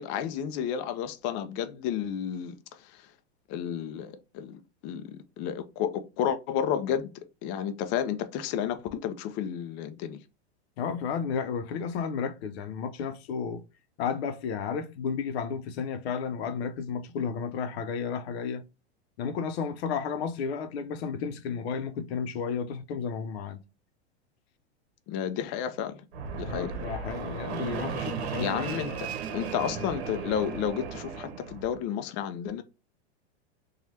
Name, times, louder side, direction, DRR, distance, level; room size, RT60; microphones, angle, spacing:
voice 1, 0.0-2.6 2.8-3.0 3.5-7.1 7.4-10.2 25.1-26.0 26.3-26.7 28.4-32.6, left 9 dB, 35° left, 0.4 m, -32 dB
voice 2, 10.8-13.6 14.0-18.6 19.2-23.6 26.4-28.8, left 6 dB, 65° left, 0.7 m, -32 dB
Fixed-wing aircraft airplane, 26.1-31.8, right 6 dB, 70° right, 0.9 m, -35 dB
3.1 x 2.3 x 2.7 m
hypercardioid pair, 125°, 33 cm